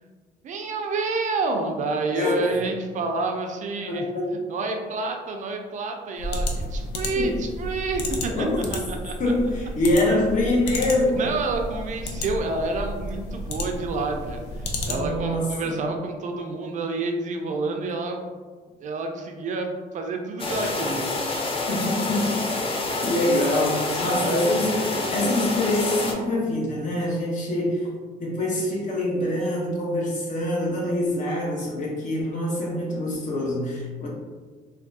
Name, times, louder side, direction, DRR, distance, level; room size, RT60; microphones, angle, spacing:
voice 1, 0.4-4.1 4.5-9.1 10.9-18.2 18.8-21.1 24.1-24.4, right 3 dB, 45° right, 3 dB, 0.4 m, -29 dB
voice 2, 3.9-4.3 7.2-7.3 8.3-8.6 9.2-11.3 14.8-15.8 21.7-22.7 23.0-27.9 28.2-34.1, left 1 dB, 50° left, -2 dB, 0.9 m, -25 dB
sound 1, 6.2-15.3, left 1 dB, 80° left, 0.5 m, -32 dB
sound 2, 20.4-26.1, left 2 dB, 35° left, 0.5 m, -27 dB
3.4 x 2.3 x 2.6 m, 1.4 s
cardioid pair, 110°, 17 cm